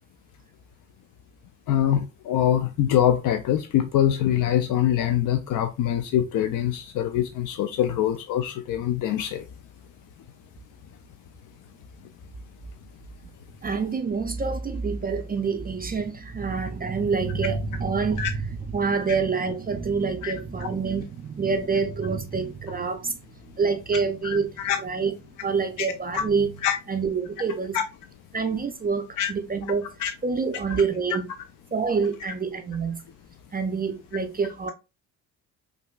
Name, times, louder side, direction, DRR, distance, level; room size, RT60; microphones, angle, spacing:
voice 1, 1.7-9.4 18.2-18.3 20.2-20.3 20.6-20.7 24.2-24.8 25.8-25.9 26.1-26.2 26.6-26.8 27.7-27.8 29.2-29.3 30.0-30.1, left 11 dB, 45° left, 0.4 m, -24 dB
voice 2, 13.6-23.2 23.6-25.1 25.4-26.5 26.9-27.8 28.3-29.9 30.2-31.3 31.7-33.0 33.5-34.7, right 5 dB, 20° right, 0.4 m, -27 dB
5.0 x 2.5 x 2.3 m
hypercardioid pair, 45°, 48 cm